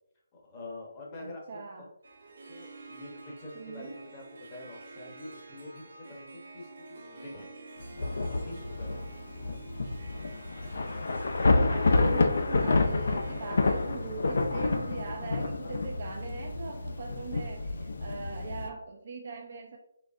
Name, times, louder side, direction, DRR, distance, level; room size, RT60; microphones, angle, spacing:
voice 1, 0.3-1.9 2.5-7.5 8.1-9.0, left 2 dB, 20° left, -2 dB, 0.8 m, -46 dB
voice 2, 1.2-1.9 3.5-4.0 11.3-19.8, right 4 dB, 45° right, 1 dB, 0.4 m, -40 dB
Harp, 2.0-16.5, right 2 dB, 60° right, 0.9 m, -49 dB
Thunder / Rain, 7.8-18.7, left 3 dB, 60° left, 0.4 m, -29 dB
4.0 x 3.2 x 2.4 m, 0.78 s
hypercardioid pair, 165°, 0 cm